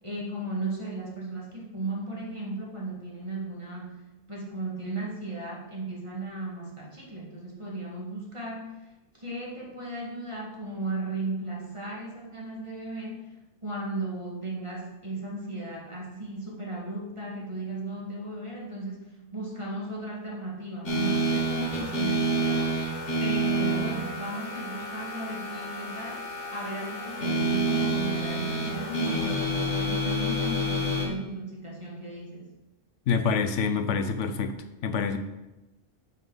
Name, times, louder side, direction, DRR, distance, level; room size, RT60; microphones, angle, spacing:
voice 1, 0.0-4.0 4.3-13.4 13.6-22.8 23.2-32.5, right 2 dB, 25° right, -4 dB, 1.8 m, -36 dB
sound 1, 20.8-31.0, right 1 dB, 50° left, 1.8 m, -28 dB
voice 2, 33.1-34.6 34.8-35.2, left 5 dB, 70° left, 9 dB, 1.0 m, -26 dB
10.0 x 5.5 x 4.0 m, 1.0 s
omnidirectional pair, 1.3 m